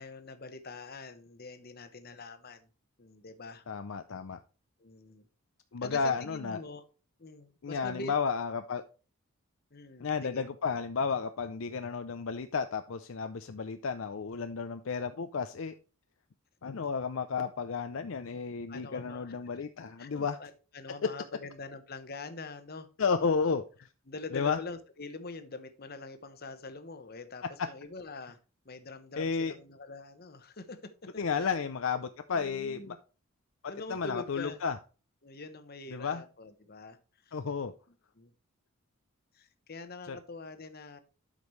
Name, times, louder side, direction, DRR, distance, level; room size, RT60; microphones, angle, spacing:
voice 1, 0.0-2.7 3.0-3.6 4.8-5.3 5.8-6.8 7.2-8.1 9.7-10.4 18.7-19.3 20.0-22.9 23.2-23.4 24.1-28.4 28.6-31.5 32.3-33.0 33.7-34.6 35.2-37.0 37.2-37.4 38.2-38.3 39.3-41.0, left 3 dB, 45° left, 10 dB, 1.0 m, -44 dB
voice 2, 3.7-4.4 5.7-6.6 7.6-8.8 10.0-15.7 16.6-20.4 23.0-23.6 24.3-24.6 29.2-29.5 31.2-33.0 33.9-34.8 35.9-36.2 37.3-37.7 40.1-40.2, left 5 dB, 65° left, 8 dB, 0.5 m, -32 dB
12.0 x 5.2 x 3.1 m, 0.35 s
head